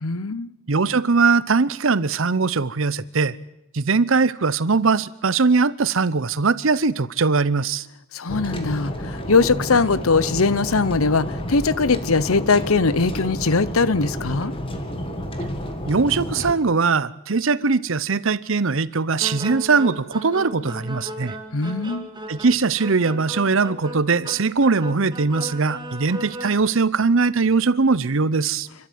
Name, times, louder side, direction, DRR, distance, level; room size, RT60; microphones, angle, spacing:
voice 1, 0.0-0.5 8.1-14.5 21.5-22.1, left 4 dB, 80° left, 0.9 m, -21 dB
voice 2, 0.7-3.4 3.7-7.8 15.9-21.3 22.3-28.7, right 4 dB, 65° right, 0.8 m, -20 dB
sound 1, 8.3-16.5, equal, 25° left, 2.2 m, -30 dB
sound 2, 19.2-26.6, equal, 20° right, 2.2 m, -36 dB
29.0 x 12.5 x 9.4 m
head